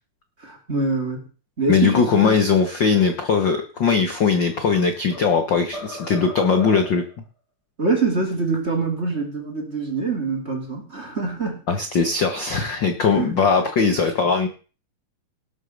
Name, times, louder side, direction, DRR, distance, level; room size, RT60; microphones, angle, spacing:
voice 1, 0.4-1.3 1.6-2.4 7.8-11.7 13.0-13.6, right 4 dB, 20° right, 2 dB, 2.8 m, -25 dB
voice 2, 1.7-7.0 11.7-14.5, left 5 dB, 50° left, 5 dB, 1.5 m, -20 dB
sound 1, 4.1-5.4 5.7-7.1, left 1 dB, 30° left, 3.1 m, -37 dB
18.0 x 6.4 x 6.5 m, 0.37 s
omnidirectional pair, 3.7 m